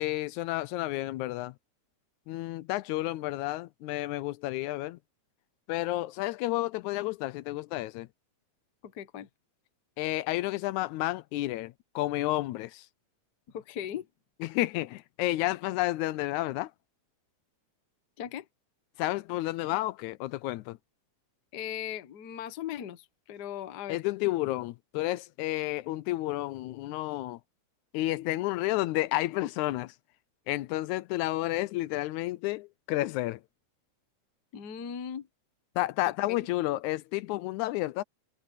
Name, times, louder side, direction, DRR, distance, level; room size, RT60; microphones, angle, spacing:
voice 1, 0.0-1.5 2.3-5.0 5.7-8.1 10.0-12.9 14.4-16.7 19.0-20.8 23.9-27.4 27.9-29.9 30.5-33.4 35.8-38.0, left 17 dB, 85° left, 2.0 m, -31 dB
voice 2, 8.8-9.3 13.5-14.1 18.2-18.5 21.5-24.0 34.5-35.3 36.1-36.4, left 9 dB, 55° left, 1.2 m, -38 dB
omnidirectional pair, 3.4 m